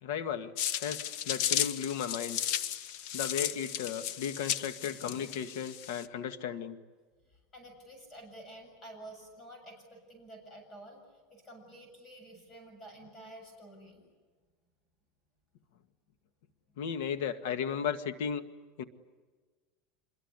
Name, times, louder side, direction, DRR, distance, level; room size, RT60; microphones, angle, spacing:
voice 1, 0.0-0.5 0.8-2.4 3.1-6.8 16.8-18.5 18.8-18.9, left 8 dB, 75° left, 10 dB, 1.8 m, -35 dB
sound 1, 0.6-6.1, left 10 dB, 55° left, 1.2 m, -34 dB
voice 2, 7.2-14.1, right 1 dB, 20° left, 4 dB, 7.4 m, -50 dB
26.5 x 22.5 x 9.7 m, 1.4 s
supercardioid pair, 155°, 0 cm